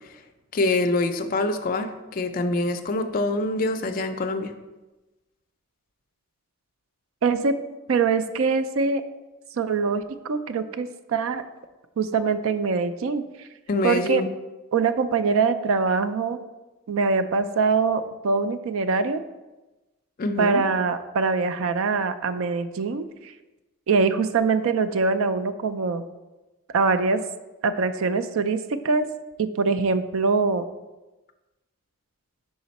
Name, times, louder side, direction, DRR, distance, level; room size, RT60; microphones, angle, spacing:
voice 1, 0.5-4.5 13.7-14.3 20.2-20.6, left 2 dB, 40° left, 7 dB, 0.4 m, -25 dB
voice 2, 7.2-7.6 7.9-9.0 9.6-11.4 12.0-13.5 13.8-14.2 14.7-16.4 16.9-19.2 20.4-23.3 23.9-26.0 26.7-27.2 27.6-29.1 29.4-30.7, right 4 dB, 70° right, 11 dB, 0.4 m, -23 dB
5.2 x 4.8 x 4.1 m, 1.1 s
head